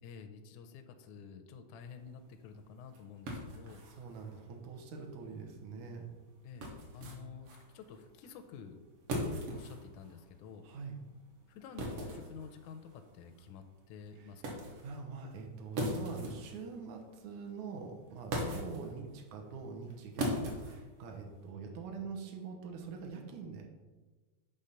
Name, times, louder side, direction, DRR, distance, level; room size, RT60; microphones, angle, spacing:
voice 1, 0.0-3.8 6.4-6.7 6.9-8.8 9.1-10.7 11.5-14.7 18.4-18.5 21.7-21.8, left 6 dB, 80° left, 6 dB, 1.9 m, -50 dB
sound 1, 1.9-21.5, equal, 55° right, 1.9 m, -42 dB
voice 2, 3.9-6.1 7.0-7.3 10.6-11.0 14.2-14.3 14.8-23.7, right 5 dB, 75° right, 2 dB, 2.3 m, -45 dB
8.9 x 3.5 x 5.6 m, 1.3 s
omnidirectional pair, 3.5 m